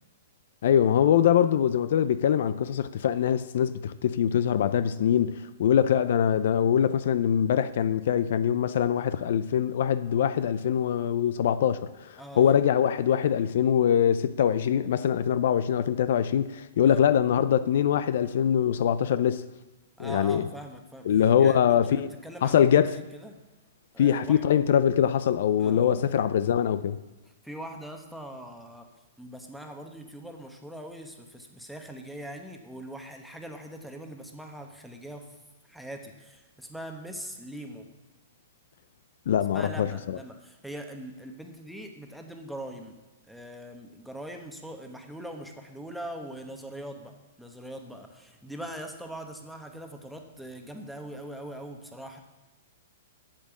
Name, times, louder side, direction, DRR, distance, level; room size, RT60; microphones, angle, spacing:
voice 1, 0.6-19.4 20.0-20.5 21.1-22.1 22.4-23.0 24.0-27.0 39.3-40.2, left 9 dB, 65° left, 0.4 m, -23 dB
voice 2, 12.2-12.6 16.8-17.0 20.0-21.1 21.4-23.4 23.9-24.4 25.6-26.0 27.4-28.9 29.2-35.3 35.7-37.9 39.5-43.0 43.3-47.1 47.4-52.2, right 1 dB, ahead, 1.0 m, -42 dB
8.7 x 7.5 x 7.2 m
hypercardioid pair, 150°, 0 cm